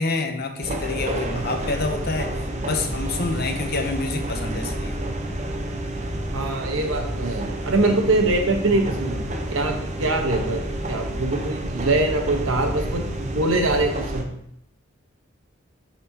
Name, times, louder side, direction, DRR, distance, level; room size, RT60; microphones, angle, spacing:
voice 1, 0.0-2.3 2.6-5.0, left 3 dB, 50° left, 5 dB, 0.8 m, -27 dB
sound 1, 0.6-14.2, right 1 dB, 35° right, 0.7 m, -29 dB
voice 2, 6.3-10.6 10.9-14.3, right 2 dB, 70° right, 3 dB, 1.1 m, -23 dB
10.5 x 4.2 x 2.8 m, 0.74 s
head